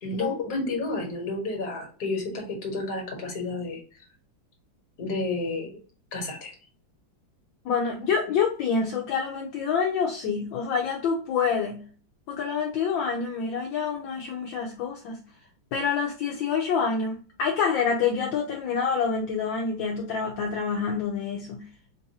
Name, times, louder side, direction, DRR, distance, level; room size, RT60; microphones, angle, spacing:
voice 1, 0.0-3.8 5.0-5.8 6.1-6.5, left 2 dB, 55° left, 1 dB, 1.7 m, -31 dB
voice 2, 7.6-11.8 12.3-15.2 15.7-21.7, left 6 dB, 75° left, 0 dB, 1.4 m, -27 dB
4.6 x 2.5 x 2.7 m, 0.40 s
omnidirectional pair, 2.2 m